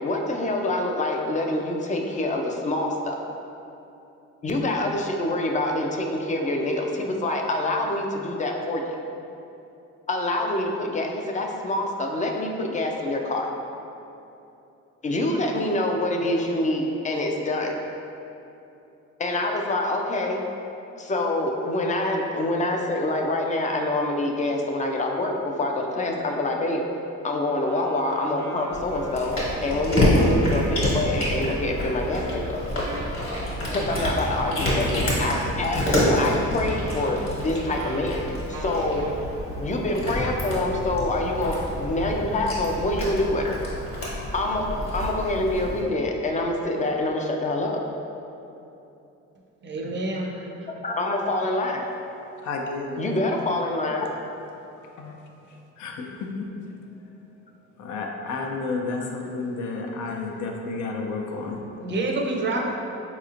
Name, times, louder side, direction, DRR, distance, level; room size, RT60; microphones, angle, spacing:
voice 1, 0.0-3.2 4.4-8.8 10.1-13.5 15.0-17.8 19.2-20.4 21.0-26.8 27.2-32.6 33.7-38.2 38.5-39.0 39.6-43.6 44.3-47.8 50.8-51.9 53.0-54.1, left 2 dB, 25° left, 2 dB, 0.3 m, -26 dB
Wind instrument woodwind instrument, 27.5-39.2, right 1 dB, 90° right, 0.5 m, -40 dB
Cat, 28.7-45.8, equal, 45° left, 1.2 m, -28 dB
voice 2, 49.6-50.7 59.2-59.3 61.8-62.7, right 2 dB, 40° right, 0 dB, 0.5 m, -28 dB
voice 3, 52.4-53.0 54.8-55.1 55.8-56.3 57.8-61.6, left 3 dB, 75° left, 1 dB, 0.5 m, -31 dB
4.1 x 3.0 x 2.4 m, 2.9 s
cardioid pair, 90°, 30 cm